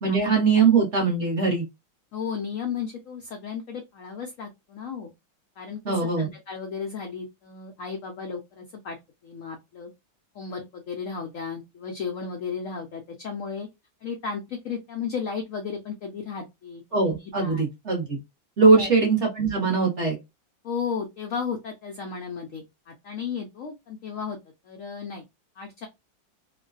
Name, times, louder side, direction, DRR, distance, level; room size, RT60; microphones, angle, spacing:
voice 1, 0.0-1.6 5.8-6.3 16.9-18.2 18.6-20.2, right 4 dB, 45° right, 0 dB, 1.1 m, -21 dB
voice 2, 2.1-5.1 5.6-5.8 6.2-9.0 9.2-9.9 10.3-13.7 14.0-17.6 18.6-18.9 20.6-24.4 24.6-25.2 25.6-25.9, left 6 dB, 90° left, 4 dB, 0.7 m, -34 dB
3.1 x 2.1 x 2.4 m, 0.22 s
omnidirectional pair, 2.0 m